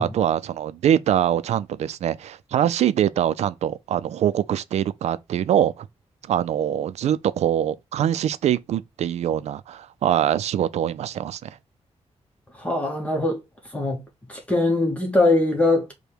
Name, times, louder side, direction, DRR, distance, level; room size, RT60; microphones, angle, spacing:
voice 1, 0.0-5.9 6.3-11.5, right 10 dB, 85° right, 0.4 m, -23 dB
voice 2, 12.6-13.4 13.7-14.0 14.3-15.9, left 2 dB, 10° left, 0.8 m, -21 dB
5.0 x 2.2 x 4.4 m
wide cardioid pair, 170°, 11 cm